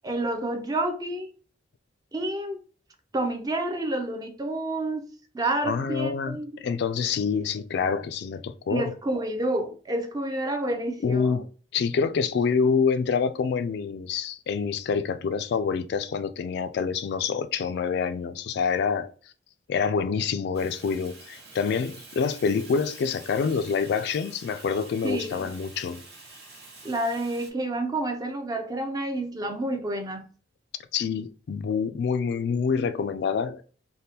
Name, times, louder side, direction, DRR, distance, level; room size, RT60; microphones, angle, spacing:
voice 1, 0.0-1.3 2.1-2.6 3.1-6.6 8.7-11.4 25.0-25.5 26.8-30.3, right 1 dB, 20° right, 0.4 m, -29 dB
voice 2, 5.6-8.9 11.0-11.5 11.7-19.1 19.7-26.0 30.9-33.6, left 5 dB, 60° left, 0.3 m, -26 dB
Fire, 20.5-27.5, right 3 dB, 60° right, 1.0 m, -47 dB
3.4 x 2.1 x 2.7 m
head